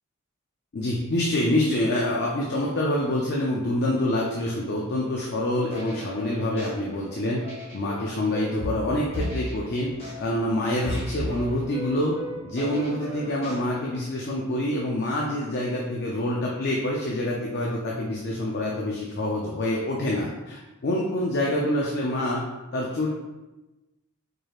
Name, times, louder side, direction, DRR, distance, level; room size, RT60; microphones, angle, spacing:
voice 1, 0.7-7.4 7.7-9.9 10.2-12.2 12.4-22.4 22.7-23.1, left 1 dB, 50° left, -2 dB, 0.5 m, -26 dB
sound 1, 5.6-14.0, equal, 25° left, 1.3 m, -36 dB
4.7 x 3.1 x 2.4 m, 1.1 s
head